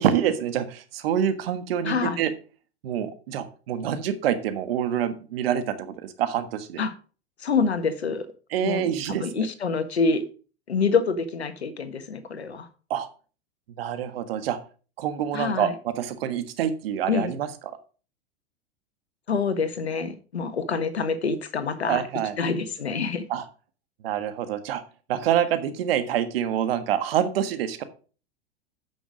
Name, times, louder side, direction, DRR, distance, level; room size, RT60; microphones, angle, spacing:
voice 1, 0.0-2.3 2.8-6.8 8.5-9.4 12.9-13.1 13.8-14.6 15.0-17.5 21.9-22.3 23.3-23.4 24.0-24.8 25.1-27.8, right 9 dB, 65° right, 11 dB, 1.5 m, -26 dB
voice 2, 1.8-2.2 6.8-6.9 7.4-8.3 8.6-10.2 10.7-12.7 15.3-15.7 17.1-17.3 19.3-22.0 22.4-23.3, left 5 dB, 85° left, 10 dB, 1.4 m, -26 dB
9.2 x 6.2 x 5.1 m, 0.37 s
hypercardioid pair, 100°, 32 cm